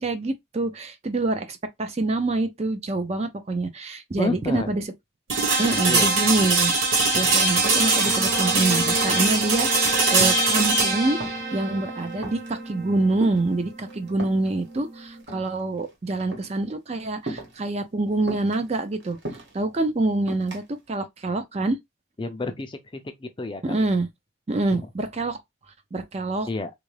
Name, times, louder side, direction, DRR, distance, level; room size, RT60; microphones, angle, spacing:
voice 1, 0.0-4.8 5.6-19.2 19.5-21.8 23.6-24.1 24.5-25.4 25.9-26.5, right 2 dB, 30° right, 0.4 m, -26 dB
voice 2, 4.2-4.7 5.9-6.1 7.2-7.3 22.2-23.9 24.7-24.9 26.5-26.7, left 2 dB, 25° left, 0.4 m, -30 dB
sound 1, 5.3-15.2, right 3 dB, 85° right, 1.4 m, -23 dB
sound 2, 7.1-7.6 8.1-8.5 8.8-10.6 10.9-11.6 12.0-12.6 13.2-14.5 15.1-15.9 16.2-16.5 17.2-17.7 18.3-19.6 20.3-20.6, right 1 dB, 55° right, 1.2 m, -37 dB
3.5 x 2.5 x 3.1 m
head